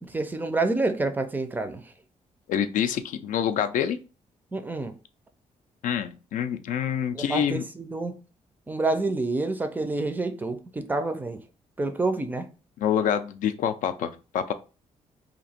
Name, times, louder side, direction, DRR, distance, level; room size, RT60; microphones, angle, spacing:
voice 1, 0.0-1.8 4.5-4.9 7.2-8.1 8.7-11.4 11.8-12.5, right 2 dB, 15° right, 0.4 m, -28 dB
voice 2, 2.5-4.0 5.8-7.6 12.8-14.5, left 9 dB, 85° left, 0.4 m, -26 dB
2.9 x 2.5 x 4.2 m
wide cardioid pair, 170°, 13 cm